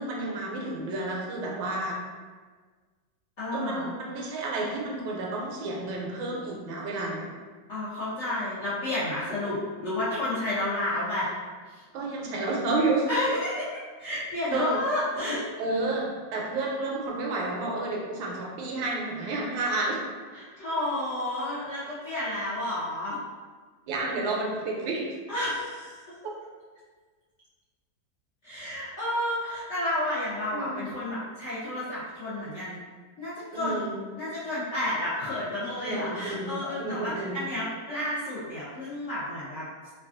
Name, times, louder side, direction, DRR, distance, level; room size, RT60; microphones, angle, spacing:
voice 1, 0.0-1.9 3.5-7.3 11.9-13.1 14.5-14.8 15.6-20.0 23.9-25.1 30.5-30.8 33.5-34.0 35.8-36.5 36.8-37.4, right 2 dB, 90° right, -2 dB, 1.4 m, -30 dB
voice 2, 3.4-3.9 7.7-11.3 11.7-11.8 13.1-15.5 20.3-23.2 25.3-26.1 28.4-32.8 33.2-33.8 34.2-39.7, left 1 dB, 70° left, -11 dB, 0.6 m, -31 dB
3.3 x 2.3 x 2.4 m, 1.5 s
omnidirectional pair, 2.1 m